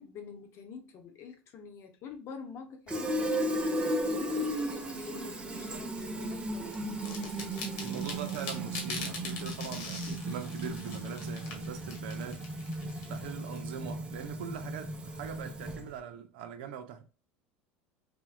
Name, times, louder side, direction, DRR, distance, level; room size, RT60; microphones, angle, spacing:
voice 1, 0.0-6.8, left 6 dB, 50° left, 0.8 m, -46 dB
Fill (with liquid), 2.9-16.0, right 1 dB, 15° right, 0.6 m, -35 dB
sound 1, 6.7-13.6, left 4 dB, 75° left, 1.2 m, -43 dB
voice 2, 7.8-12.5 13.0-17.0, right 8 dB, 80° right, 0.6 m, -42 dB
3.5 x 2.2 x 2.3 m
supercardioid pair, 100°, 6 cm